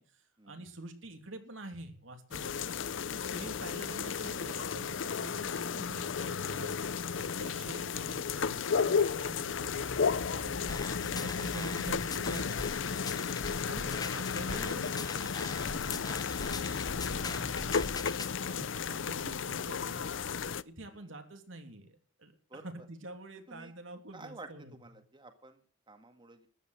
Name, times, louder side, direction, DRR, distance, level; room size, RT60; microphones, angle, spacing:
voice 1, 0.0-2.7 3.1-6.8 7.1-12.6 12.9-17.8 18.4-20.1 20.6-24.7, right 2 dB, 85° right, 6 dB, 3.0 m, -47 dB
sound 1, 2.3-20.6, left 6 dB, 75° left, 0.6 m, -33 dB
sound 2, 9.6-13.1, right 1 dB, 40° right, 3.0 m, -51 dB
sound 3, 10.7-18.3, left 4 dB, 20° left, 0.9 m, -42 dB
voice 2, 11.0-11.5 20.8-21.1 22.5-22.9 23.5-23.7 24.1-25.6 25.9-26.5, right 2 dB, 25° right, 7 dB, 1.9 m, -52 dB
14.0 x 11.0 x 6.5 m, 0.42 s
head